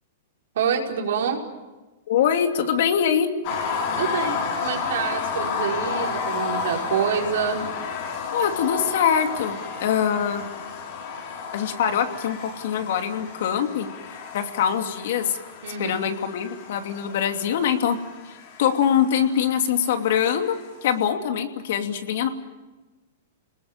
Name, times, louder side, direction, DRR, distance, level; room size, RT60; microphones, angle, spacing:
voice 1, 0.5-1.4 4.0-7.6 15.6-16.1, right 7 dB, 75° right, 1 dB, 4.9 m, -26 dB
voice 2, 2.1-3.3 8.3-10.4 11.5-15.4 15.8-18.0 18.2-20.5 20.8-22.3, left 8 dB, 65° left, 6 dB, 2.7 m, -23 dB
sound 1, 3.4-20.7, left 5 dB, 50° left, 5.3 m, -32 dB
29.5 x 20.0 x 7.5 m, 1.2 s
hypercardioid pair, 145°, 0 cm